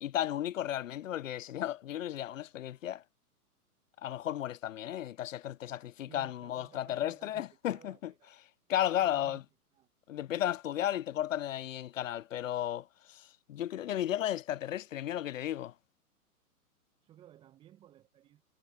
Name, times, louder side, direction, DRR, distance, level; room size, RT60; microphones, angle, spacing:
voice 1, 0.0-3.0 4.0-8.1 8.7-9.4 10.1-15.7, left 12 dB, 60° left, 0.5 m, -34 dB
voice 2, 6.1-8.3 8.9-9.4 9.7-9.9 17.0-18.4, right 12 dB, 10° right, 0.7 m, -58 dB
figure-of-eight pair, 120°, 45 cm